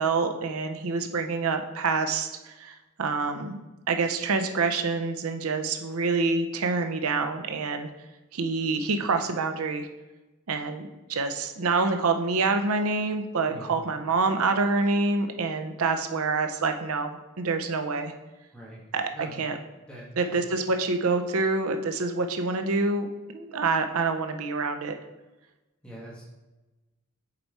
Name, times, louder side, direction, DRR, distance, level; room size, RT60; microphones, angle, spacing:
voice 1, 0.0-3.6 3.9-7.9 8.3-9.9 10.5-18.1 18.9-19.1 19.4-19.6 20.2-23.1 23.3-24.9, right 4 dB, 90° right, 6 dB, 0.6 m, -27 dB
voice 2, 18.5-18.8 19.1-19.4 19.9-20.3 25.8-26.2, right 1 dB, 5° left, -6 dB, 2.1 m, -43 dB
6.7 x 4.6 x 4.1 m, 1.1 s
head